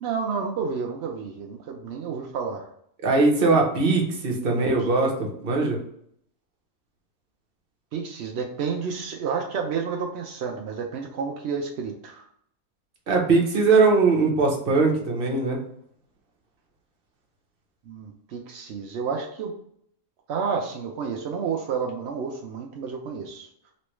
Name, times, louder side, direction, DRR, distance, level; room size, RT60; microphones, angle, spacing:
voice 1, 0.0-2.7 4.4-4.9 7.9-12.2 17.9-19.5 20.3-23.5, right 6 dB, 75° right, 1 dB, 0.6 m, -30 dB
voice 2, 3.0-5.8 13.1-15.6, right 3 dB, 45° right, 0 dB, 0.9 m, -21 dB
3.2 x 3.1 x 3.0 m, 0.68 s
omnidirectional pair, 1.7 m